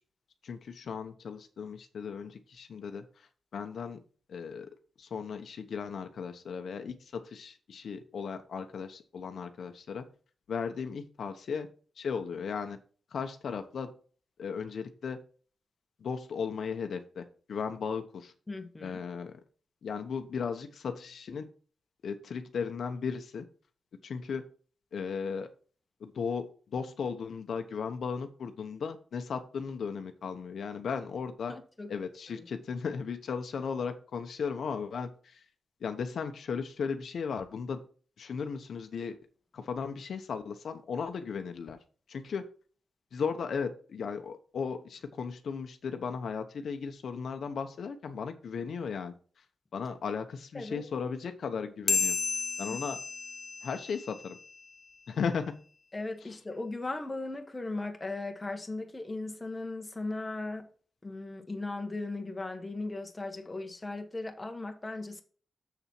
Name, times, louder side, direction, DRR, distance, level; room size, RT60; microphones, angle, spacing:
voice 1, 0.4-4.0 4.3-4.7 5.0-10.1 10.5-11.7 12.0-12.8 13.1-13.9 14.4-15.2 16.0-18.3 18.8-19.4 19.8-21.5 22.0-23.5 24.0-24.4 24.9-25.5 26.0-31.5 31.9-35.4 35.8-37.8 38.2-39.2 39.5-41.8 42.1-42.5 43.1-49.4 49.7-52.2 52.6-53.0 53.6-54.4 55.1-55.6, left 6 dB, 70° left, 1.0 m, -36 dB
voice 2, 18.5-19.0 31.5-31.9 32.3-32.5 50.5-50.8 52.7-52.8 55.9-60.7 61.0-65.2, left 2 dB, 15° left, 1.3 m, -37 dB
sound 1, 51.9-54.7, left 4 dB, 35° left, 0.4 m, -33 dB
7.1 x 7.0 x 4.5 m
wide cardioid pair, 145°, 0 cm